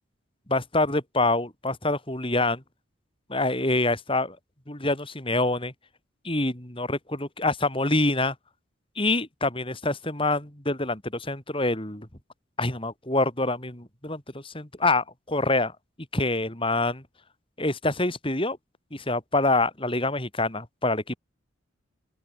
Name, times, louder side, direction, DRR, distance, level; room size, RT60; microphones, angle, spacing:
voice 1, 0.5-2.6 3.3-4.4 4.7-5.7 6.2-8.3 9.0-12.1 12.6-15.7 16.1-17.0 17.6-18.6 18.9-21.2, left 2 dB, 25° left, 4.2 m, -26 dB
open air
head